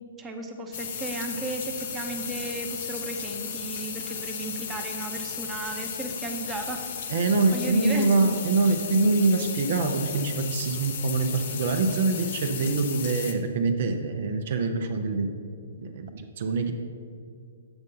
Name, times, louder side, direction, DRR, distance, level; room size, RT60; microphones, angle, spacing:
voice 1, 0.2-6.8 7.5-8.3, right 2 dB, 15° right, 2 dB, 0.8 m, -34 dB
sound 1, 0.7-13.3, left 7 dB, 55° left, 0.8 m, -35 dB
voice 2, 7.1-15.3 15.8-16.7, right 3 dB, 55° right, 5 dB, 0.6 m, -25 dB
7.9 x 5.4 x 5.4 m, 2.3 s
hypercardioid pair, 125°, 0 cm